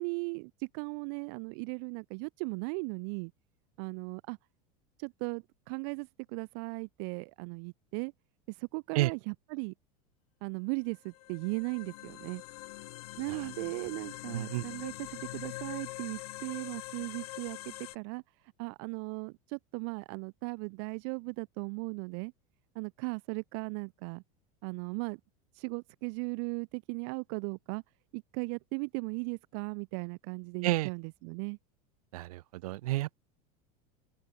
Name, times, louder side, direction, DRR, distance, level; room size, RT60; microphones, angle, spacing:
voice 1, 0.0-3.3 3.8-4.4 5.0-8.1 8.5-9.7 10.4-12.4 13.2-18.2 18.6-22.3 22.7-24.2 24.6-25.2 25.5-27.8 28.1-31.6, right 40 dB or more, 45° right, 0.8 m, -37 dB
sound 1, 10.9-18.0, left 17 dB, 80° left, 2.2 m, -44 dB
voice 2, 14.3-14.6 30.6-30.9 32.1-33.2, right 18 dB, 80° right, 2.3 m, -31 dB
open air
supercardioid pair, 175°, 19 cm